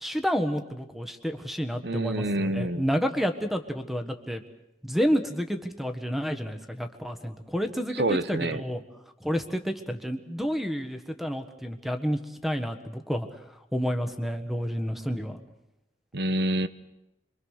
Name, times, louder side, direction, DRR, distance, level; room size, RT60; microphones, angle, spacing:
voice 1, 0.0-4.4 4.8-8.8 9.2-13.3 13.7-15.4, equal, ahead, 8 dB, 1.5 m, -30 dB
voice 2, 1.8-2.8 7.9-8.6 16.1-16.7, right 1 dB, 65° right, 14 dB, 1.0 m, -27 dB
27.0 x 23.5 x 6.5 m, 0.88 s
head